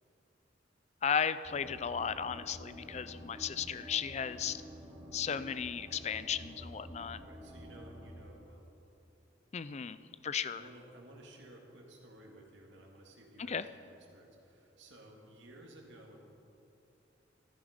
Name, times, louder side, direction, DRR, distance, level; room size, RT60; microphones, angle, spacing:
voice 1, 1.0-4.6 5.1-7.2 9.5-10.0 10.2-10.6 13.5-13.7, left 7 dB, 35° left, 14 dB, 0.4 m, -35 dB
sound 1, 1.4-8.1, equal, 30° right, 2.8 m, -50 dB
voice 2, 7.2-8.7 10.5-16.2, right 1 dB, 75° right, 0 dB, 2.1 m, -55 dB
14.0 x 11.5 x 5.1 m, 2.8 s
head